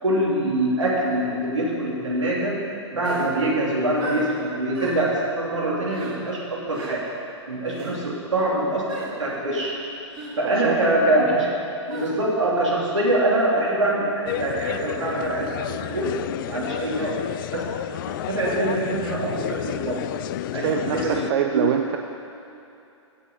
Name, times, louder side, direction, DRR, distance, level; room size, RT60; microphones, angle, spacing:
voice 1, 0.0-2.6 2.9-7.1 7.5-9.8 10.4-11.6 11.9-16.2 16.5-17.2 17.5-17.7 18.1-20.0 20.5-21.3 21.5-21.7, right 1 dB, 85° right, -4 dB, 3.1 m, -24 dB
sound 1, 3.0-3.3 4.0-4.2 4.7-5.0 5.9-6.1 6.7-6.9 7.7-7.9 8.9-9.1 10.1-10.3 11.9-12.1, right 2 dB, 30° right, 2.9 m, -35 dB
sound 2, 14.3-21.3, left 13 dB, 45° left, 0.4 m, -31 dB
voice 2, 20.6-22.0, right 9 dB, 55° right, 3 dB, 0.7 m, -24 dB
15.5 x 6.3 x 5.6 m, 2.8 s
hypercardioid pair, 120°, 15 cm